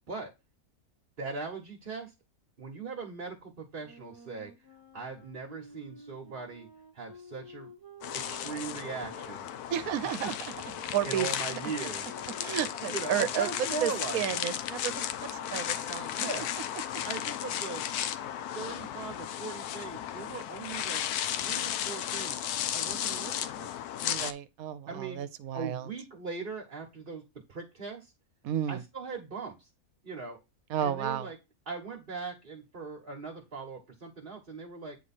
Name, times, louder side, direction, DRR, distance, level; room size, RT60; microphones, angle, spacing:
voice 1, 1.2-2.1 2.6-4.5 4.9-6.7 6.9-7.7 8.1-9.5 11.0-12.2 12.9-14.4 16.2-16.5 17.0-17.8 18.5-21.0 21.4-22.4 22.7-23.7 24.9-25.2 25.5-27.2 27.5-28.1 28.7-29.7 30.0-30.4 30.8-31.4 31.7-35.0, right 4 dB, 40° right, 1.3 m, -39 dB
Wind instrument woodwind instrument, 3.8-9.7 10.4-16.2, right 2 dB, 15° right, 1.0 m, -52 dB
sound 1, 8.0-24.3, left 10 dB, 80° left, 1.1 m, -35 dB
voice 2, 9.7-10.4 10.9-11.3 12.4-13.5 13.8-15.1 15.3-16.3 24.0-25.9 28.4-28.8 30.7-31.3, right 10 dB, 70° right, 1.1 m, -32 dB
8.8 x 3.1 x 4.2 m
omnidirectional pair, 1.6 m